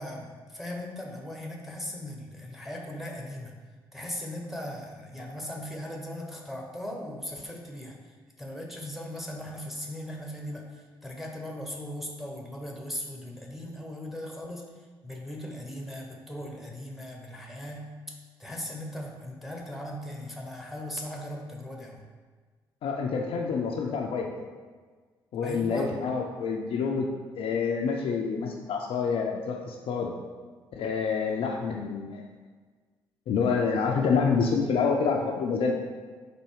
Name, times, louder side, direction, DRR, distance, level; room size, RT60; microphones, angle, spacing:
voice 1, 0.0-3.5 3.9-8.0 8.4-14.7 15.0-17.9 18.4-22.0 25.4-25.9, left 1 dB, ahead, 0 dB, 1.0 m, -38 dB
voice 2, 22.8-24.3 25.3-27.1 27.4-30.1 30.7-32.3 33.3-35.7, left 5 dB, 50° left, 0 dB, 0.5 m, -27 dB
4.2 x 2.7 x 4.6 m, 1.5 s
figure-of-eight pair, 45°, 12 cm